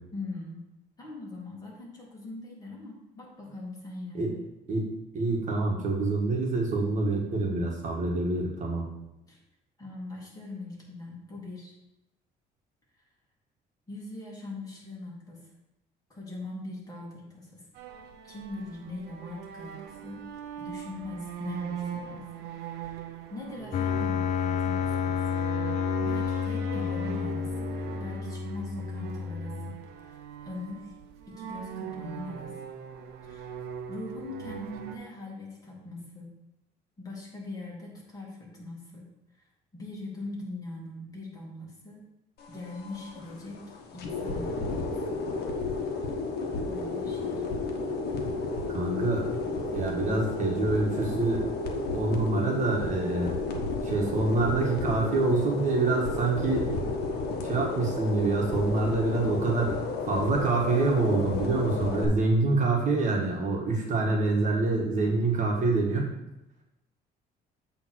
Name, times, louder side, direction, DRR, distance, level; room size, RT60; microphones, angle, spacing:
voice 1, 0.1-0.6 1.0-4.4 9.3-9.4 9.8-11.8 13.9-15.5 16.1-17.6 18.2-20.2 20.6-22.3 22.8-25.4 26.0-29.7 30.0-31.0 31.3-32.6 33.2-33.6 33.9-36.3 37.0-39.0 39.3-39.4 39.7-42.0 42.5-43.6 43.9-45.0 46.6-47.4, left 2 dB, 20° left, -4 dB, 2.6 m, -41 dB
voice 2, 4.7-8.9 48.7-49.2 49.7-51.4 51.9-53.3 53.8-56.7 57.4-59.8 60.0-66.1, right 3 dB, 45° right, -1 dB, 1.5 m, -26 dB
sound 1, 17.7-35.0, right 9 dB, 80° right, 0.8 m, -40 dB
sound 2, 23.7-29.7, left 7 dB, 45° left, 0.5 m, -30 dB
sound 3, 42.4-62.1, left 3 dB, 70° left, 1.3 m, -32 dB
8.0 x 3.5 x 6.1 m, 0.91 s
cardioid pair, 110°, 17 cm